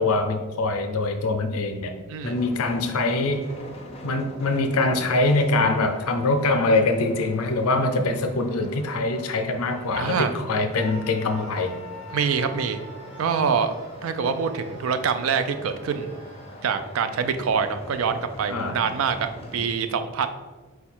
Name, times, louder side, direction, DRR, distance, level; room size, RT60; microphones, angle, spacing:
voice 1, 0.0-2.0 2.2-3.4 4.0-11.8 18.5-18.8, left 2 dB, 85° left, 6 dB, 0.5 m, -23 dB
sound 1, 2.2-19.7, equal, 30° left, 0.5 m, -43 dB
voice 2, 10.0-10.3 12.1-12.8 13.2-13.7 14.0-16.2 16.6-20.3, right 6 dB, 70° right, 9 dB, 0.4 m, -25 dB
Screaming, 10.7-16.6, left 1 dB, 30° right, 1.1 m, -45 dB
4.6 x 2.3 x 4.3 m, 1.3 s
head